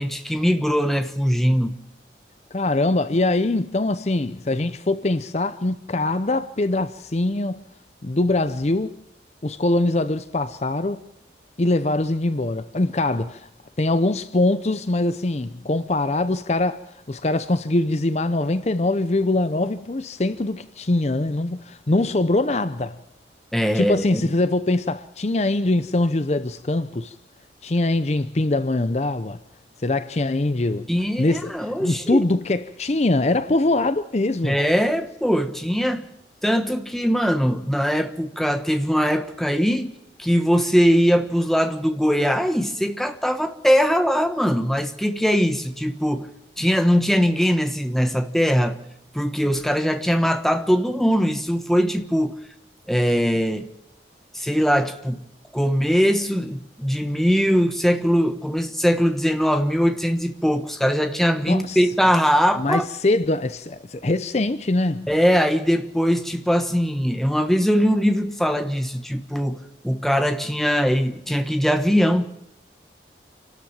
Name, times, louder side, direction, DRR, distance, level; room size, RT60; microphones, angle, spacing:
voice 1, 0.0-1.8 23.5-24.2 30.9-32.2 34.4-36.1 36.4-46.3 46.6-48.8 49.1-52.4 52.9-53.7 54.3-55.2 55.5-62.9 65.1-72.3, equal, ahead, 1.2 m, -21 dB
voice 2, 2.5-7.6 8.0-9.0 9.4-11.1 11.6-13.5 13.8-23.0 23.7-27.1 27.6-29.4 29.8-30.9 31.2-34.6 61.4-61.8 62.6-65.1, left 2 dB, 40° left, 0.6 m, -23 dB
28.0 x 12.5 x 7.4 m
head